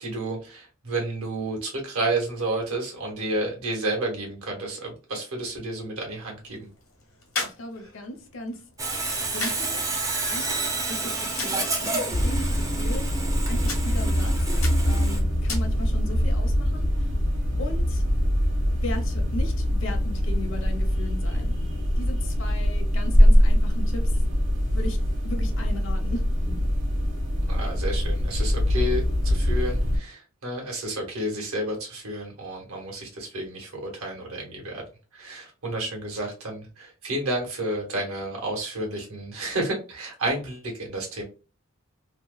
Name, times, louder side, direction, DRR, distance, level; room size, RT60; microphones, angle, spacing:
voice 1, 0.0-6.7 27.5-34.8 35.1-41.2, right 1 dB, 85° right, 0 dB, 1.2 m, -31 dB
sh digging labored breathing, 6.1-16.1, left 3 dB, 80° left, 1.0 m, -40 dB
voice 2, 7.4-8.6 9.3-9.8 10.3-10.6 10.9-13.1 13.5-14.3 14.8-17.1 17.6-18.0 18.8-21.5 22.0-24.0 24.7-25.0 25.2-26.2, left 1 dB, 60° left, 5 dB, 0.7 m, -37 dB
Sawing, 8.8-15.2, right 3 dB, 15° right, 0.4 m, -29 dB
sound 1, 12.1-30.0, equal, 60° right, 1.1 m, -23 dB
2.8 x 2.1 x 2.2 m, 0.34 s
head